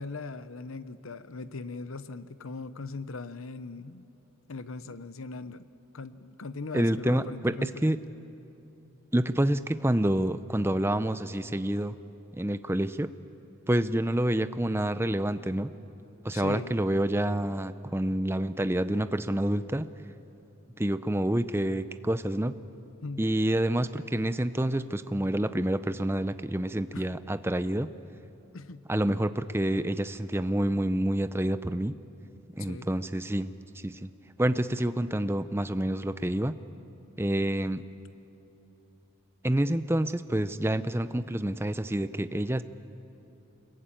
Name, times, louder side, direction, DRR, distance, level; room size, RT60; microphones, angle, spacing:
voice 1, 0.0-4.1 4.5-5.7 5.9-7.9 16.3-16.8 23.0-23.3 26.9-27.1 28.5-28.8 32.6-32.9, left 3 dB, 75° left, 13 dB, 0.8 m, -39 dB
voice 2, 6.7-8.0 9.1-11.9 12.3-13.1 13.7-15.7 16.2-19.9 20.8-22.5 23.2-27.9 28.9-31.9 32.6-34.1 34.4-36.5 37.2-37.8 39.4-42.6, right 1 dB, 10° right, 12 dB, 0.5 m, -28 dB
25.5 x 22.0 x 9.0 m, 2.9 s
head